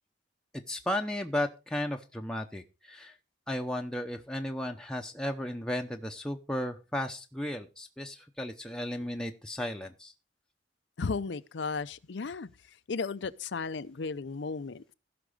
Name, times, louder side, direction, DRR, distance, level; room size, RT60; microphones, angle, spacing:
voice 1, 0.7-3.1 3.5-10.1, left 1 dB, 5° left, 0.7 m, -34 dB
voice 2, 11.0-12.5 12.9-14.9, left 4 dB, 80° left, 0.6 m, -34 dB
15.5 x 6.0 x 5.0 m
head